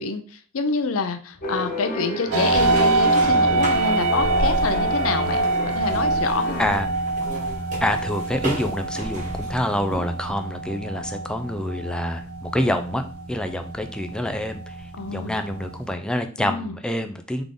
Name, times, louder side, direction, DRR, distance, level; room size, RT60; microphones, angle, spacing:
voice 1, 0.0-6.7 15.0-15.4 16.4-16.8, left 4 dB, 75° left, 8 dB, 0.5 m, -27 dB
sound 1, 1.4-6.7, left 1 dB, 40° left, 1.1 m, -31 dB
sound 2, 2.3-15.9, right 3 dB, 85° right, 0.6 m, -25 dB
sound 3, 2.5-10.3, right 1 dB, 35° right, 1.2 m, -33 dB
voice 2, 7.8-13.0 13.3-14.7 15.1-17.4, left 1 dB, 5° left, 6 dB, 0.3 m, -26 dB
3.7 x 3.4 x 3.7 m, 0.40 s
head